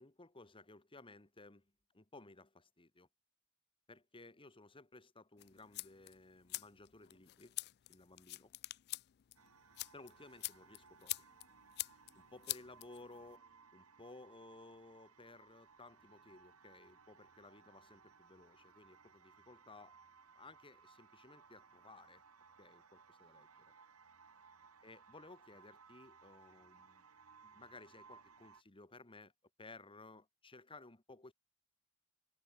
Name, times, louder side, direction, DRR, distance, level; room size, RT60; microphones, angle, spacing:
voice 1, 0.0-3.1 3.9-7.6 7.9-8.5 9.9-11.3 12.2-13.5 13.7-20.0 20.4-22.2 22.6-23.7 24.8-27.0 27.4-29.3 29.6-31.3, left 2 dB, 25° left, 1.9 m, -58 dB
sound 1, 5.4-13.4, left 18 dB, 50° left, 0.4 m, -47 dB
sound 2, 9.4-28.6, right 5 dB, 75° right, 1.9 m, -63 dB
head